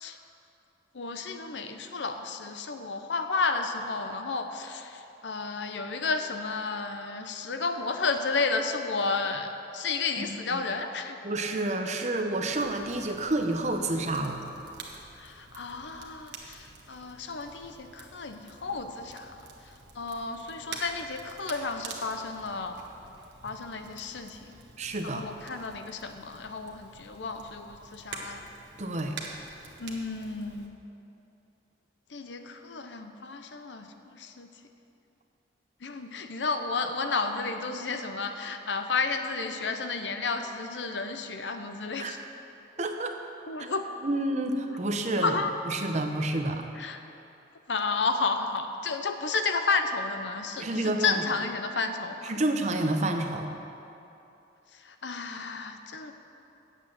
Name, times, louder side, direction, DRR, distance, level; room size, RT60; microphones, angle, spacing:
voice 1, 0.9-11.2 15.2-19.3 19.9-22.8 23.4-24.6 25.0-28.4 29.8-30.8 32.1-34.5 35.8-42.2 43.5-43.9 45.2-45.5 46.8-47.0 47.7-52.3 54.8-56.1, left 4 dB, 80° left, 7 dB, 0.7 m, -32 dB
voice 2, 10.2-10.6 11.2-14.4 23.5-23.6 24.8-25.3 28.8-29.2 42.0-42.1 42.8-43.1 43.6-43.7 44.0-45.4 45.7-46.6 50.6-51.2 52.2-53.5, right 2 dB, 40° right, 4 dB, 0.8 m, -29 dB
Crackle, 12.4-30.7, right 4 dB, 80° right, 1.3 m, -47 dB
8.6 x 8.1 x 7.4 m, 2.8 s
head